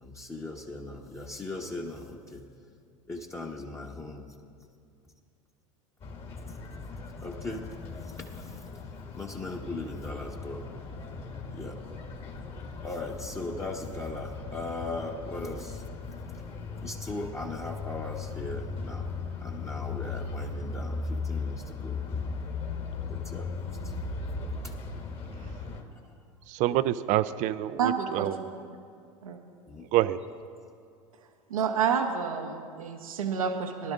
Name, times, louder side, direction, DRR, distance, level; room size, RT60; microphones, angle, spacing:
voice 1, 0.0-2.4 3.1-4.3 7.2-7.7 8.4-8.5 9.1-10.7 11.5-11.8 12.8-15.8 16.8-19.1 19.4-22.0 23.1-23.9 24.6-24.7 28.7-28.8 29.7-29.9, left 2 dB, 15° left, -1 dB, 1.2 m, -38 dB
sound 1, 6.0-25.8, left 4 dB, 35° left, 1.7 m, -37 dB
voice 2, 26.5-28.4 29.9-30.2, right 14 dB, 45° right, 15 dB, 0.5 m, -26 dB
voice 3, 27.8-28.3 29.2-29.4 31.5-33.9, right 7 dB, 80° right, 5 dB, 1.0 m, -29 dB
22.0 x 11.5 x 2.5 m, 2.3 s
hypercardioid pair, 85°, 18 cm